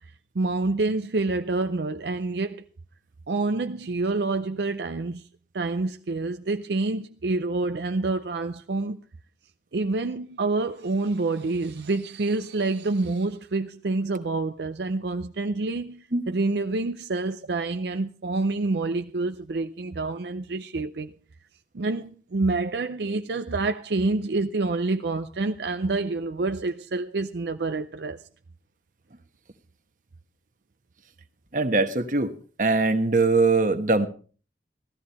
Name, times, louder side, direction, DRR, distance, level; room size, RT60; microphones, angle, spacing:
voice 1, 0.3-2.6 3.3-5.3 5.5-9.0 9.7-21.1 21.7-28.2, right 3 dB, 75° right, 0.6 m, -27 dB
voice 2, 31.5-32.3 32.6-34.1, right 3 dB, 45° right, 1.2 m, -21 dB
16.0 x 13.5 x 4.2 m
head